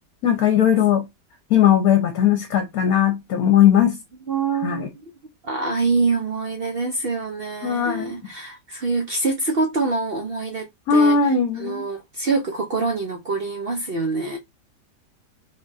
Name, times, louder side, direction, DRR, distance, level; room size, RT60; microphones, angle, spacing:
voice 1, 0.2-1.1 1.5-4.0 4.6-4.9 7.6-8.1 10.9-11.8, left 8 dB, 65° left, 1.1 m, -18 dB
voice 2, 4.3-5.1 5.4-14.4, right 3 dB, 65° right, 0.5 m, -25 dB
3.9 x 2.4 x 4.0 m
omnidirectional pair, 1.9 m